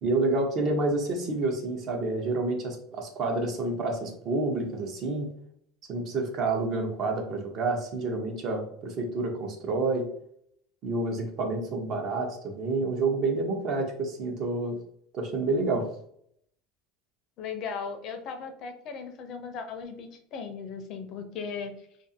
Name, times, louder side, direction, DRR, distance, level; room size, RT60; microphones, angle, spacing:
voice 1, 0.0-5.3 5.9-10.1 10.8-14.8 15.1-15.9, right 3 dB, 45° right, 3 dB, 0.7 m, -29 dB
voice 2, 17.4-21.7, left 5 dB, 50° left, 6 dB, 0.5 m, -37 dB
2.5 x 2.4 x 2.6 m, 0.67 s
supercardioid pair, 130°, 0 cm